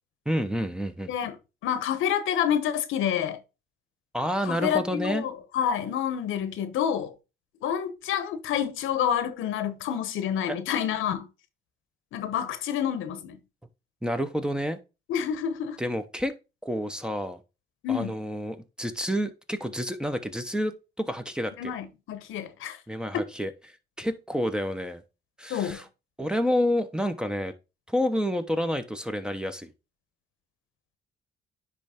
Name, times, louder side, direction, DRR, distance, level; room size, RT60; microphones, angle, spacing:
voice 1, 0.3-1.1 4.1-5.2 10.5-10.6 14.0-14.8 15.8-16.3 16.6-17.4 17.9-21.7 22.9-23.5 24.0-25.0 25.4-25.9 26.2-27.5 27.9-29.7, equal, 5° right, 0.9 m, -29 dB
voice 2, 1.6-3.4 4.4-7.1 7.6-11.3 12.1-13.4 15.1-15.8 17.8-18.2 21.6-22.8 23.1-23.2 25.5-25.8, left 9 dB, 85° left, 1.0 m, -28 dB
9.9 x 3.3 x 3.6 m
cardioid pair, 90°, 20 cm